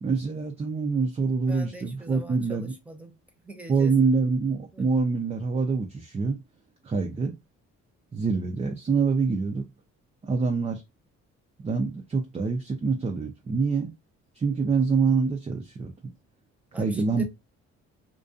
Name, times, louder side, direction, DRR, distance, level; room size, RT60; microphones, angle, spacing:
voice 1, 0.0-2.7 3.7-6.4 6.8-7.3 8.1-9.7 10.2-10.8 11.6-13.9 14.4-16.1 16.8-17.2, right 4 dB, 20° right, 0.4 m, -25 dB
voice 2, 1.5-3.1 3.4-3.9 4.7-4.9 16.7-17.2, right 1 dB, 5° right, 0.8 m, -42 dB
2.4 x 2.2 x 2.4 m
cardioid pair, 90°, 30 cm